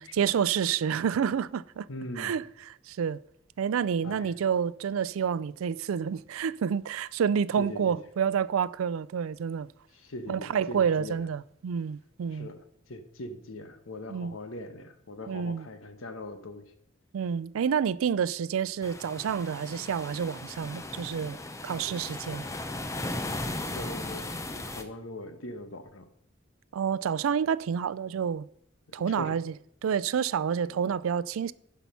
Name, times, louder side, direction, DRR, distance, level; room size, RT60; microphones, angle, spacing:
voice 1, 0.0-1.9 2.2-3.2 3.6-9.7 10.3-12.5 14.1-14.4 15.3-15.7 17.1-21.4 21.6-22.4 26.7-28.4 28.9-29.5 29.8-31.5, right 7 dB, 85° right, 0.4 m, -29 dB
voice 2, 1.9-2.3 4.0-4.3 7.6-8.0 9.9-11.2 12.3-16.7 22.3-22.4 23.5-24.3 24.7-26.1 28.9-29.4 30.6-30.8, left 1 dB, 80° left, 1.1 m, -41 dB
sound 1, 18.8-24.8, left 2 dB, 15° left, 0.6 m, -37 dB
10.5 x 5.8 x 5.5 m
head